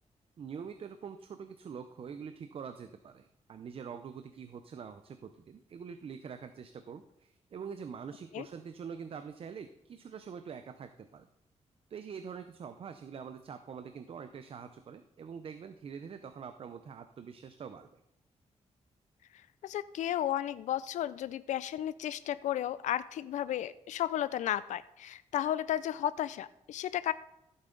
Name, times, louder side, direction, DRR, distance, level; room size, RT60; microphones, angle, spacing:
voice 1, 0.4-11.3 11.9-18.0, right 6 dB, 50° right, 9 dB, 0.6 m, -45 dB
voice 2, 19.6-27.1, left 12 dB, 85° left, 16 dB, 0.4 m, -33 dB
14.5 x 8.1 x 3.9 m, 0.85 s
wide cardioid pair, 130°, 12 cm